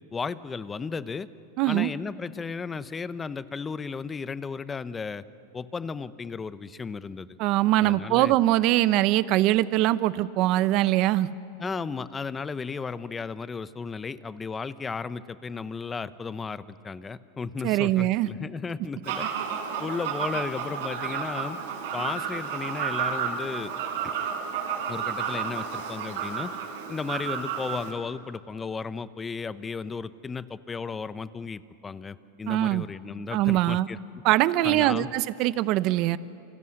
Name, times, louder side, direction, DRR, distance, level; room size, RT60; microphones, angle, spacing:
voice 1, 0.1-1.3 1.7-5.2 5.5-7.4 7.8-8.3 11.6-19.3 19.8-21.6 21.9-23.7 24.9-26.5 26.9-34.0 34.6-35.1, left 5 dB, 15° left, 14 dB, 0.8 m, -34 dB
voice 2, 1.6-1.9 7.4-11.3 17.6-18.3 32.5-32.8 33.3-33.9 34.2-36.2, right 16 dB, 50° right, 15 dB, 0.8 m, -22 dB
Fowl, 19.0-27.9, right 7 dB, 70° right, 5.8 m, -31 dB
29.0 x 27.0 x 6.5 m, 2.6 s
supercardioid pair, 125°, 0 cm